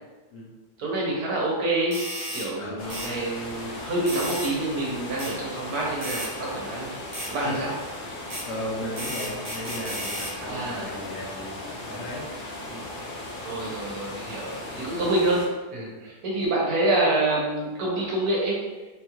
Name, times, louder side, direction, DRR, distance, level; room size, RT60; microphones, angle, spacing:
voice 1, 0.8-2.0 2.3-6.9 7.3-7.7 10.4-10.9 13.4-15.4 15.7-18.6, right 2 dB, 70° right, -3 dB, 1.3 m, -27 dB
sound 1, 1.9-2.5 2.9-3.1 4.1-4.5 5.2-5.3 6.0-6.3 7.1-7.3 8.3-8.4 9.0-10.3, equal, 25° right, 0.4 m, -33 dB
voice 2, 2.6-3.2 7.4-7.7 8.4-12.2 12.6-12.9 14.6-14.9, left 1 dB, 65° left, -5 dB, 0.9 m, -36 dB
sound 2, 2.8-15.5, left 1 dB, 90° left, 0.4 m, -37 dB
3.8 x 2.3 x 2.9 m, 1.2 s
omnidirectional pair, 1.7 m